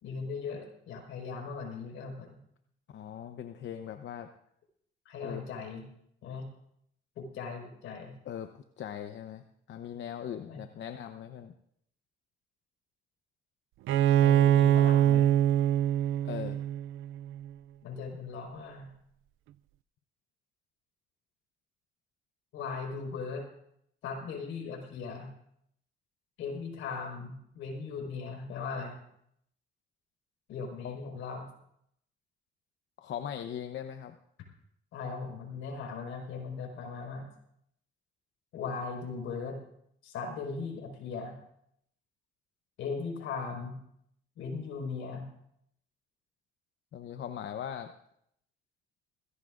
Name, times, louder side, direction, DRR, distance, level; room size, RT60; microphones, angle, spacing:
voice 1, 0.0-2.4 5.0-5.9 6.2-6.5 7.1-8.1 10.5-10.6 14.2-15.3 17.8-18.9 22.5-23.4 24.0-25.3 26.4-29.0 30.5-31.5 34.9-37.3 38.5-39.6 40.0-41.3 42.8-43.8 44.4-45.3, left 4 dB, 90° left, 1 dB, 5.0 m, -38 dB
voice 2, 2.9-4.3 5.2-5.5 8.2-11.5 16.2-16.6 30.8-31.0 33.0-34.2 46.9-47.9, left 9 dB, 65° left, 7 dB, 0.9 m, -40 dB
Bowed string instrument, 13.9-17.5, right 11 dB, 85° right, 0.4 m, -24 dB
22.0 x 16.5 x 2.5 m, 0.71 s
cardioid pair, 90°, 20 cm